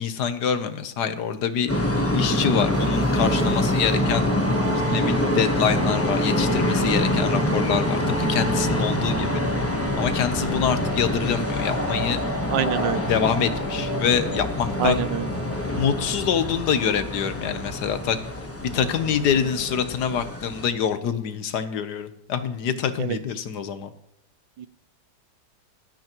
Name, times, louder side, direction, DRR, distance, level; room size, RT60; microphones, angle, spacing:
voice 1, 0.0-1.7 2.1-4.3 4.8-9.4 9.9-12.2 13.1-15.0 15.8-18.2 18.6-23.9, left 7 dB, 70° left, 10 dB, 1.4 m, -25 dB
sound 1, 1.7-20.6, left 1 dB, 10° left, 0.9 m, -25 dB
sound 2, 2.7-15.9, right 3 dB, 65° right, 0.5 m, -35 dB
voice 2, 12.5-13.1 14.8-15.3 23.0-23.2 24.6-24.7, right 10 dB, 90° right, 14 dB, 1.4 m, -26 dB
18.0 x 13.0 x 3.0 m, 0.80 s
omnidirectional pair, 1.9 m